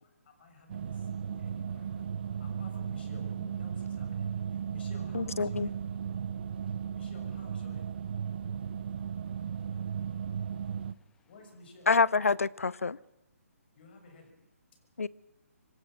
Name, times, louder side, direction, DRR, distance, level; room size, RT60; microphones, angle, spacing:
voice 1, 0.4-2.1 2.4-4.4 4.7-5.7 6.9-7.9 11.3-11.9 13.7-14.3, left 3 dB, 40° left, 6.6 m, -53 dB
sound 1, 0.7-10.9, right 7 dB, 40° right, 0.8 m, -36 dB
voice 2, 5.1-5.7 11.9-13.0 15.0-15.1, left 4 dB, 70° left, 0.7 m, -27 dB
voice 3, 9.2-11.5 14.1-14.3, left 6 dB, 10° left, 1.4 m, -74 dB
26.5 x 16.0 x 6.4 m
figure-of-eight pair, 140°, 8 cm